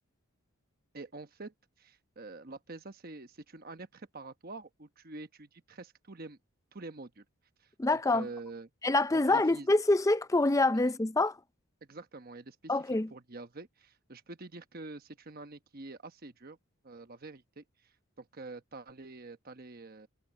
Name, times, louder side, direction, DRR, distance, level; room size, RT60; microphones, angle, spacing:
voice 1, 0.9-6.4 6.7-7.2 7.6-8.7 9.1-9.7 10.7-10.8 11.9-16.6 16.8-20.1, right 3 dB, 40° right, 1.0 m, -47 dB
voice 2, 7.8-8.3 8.8-11.4 12.7-13.1, left 2 dB, 15° left, 0.5 m, -26 dB
head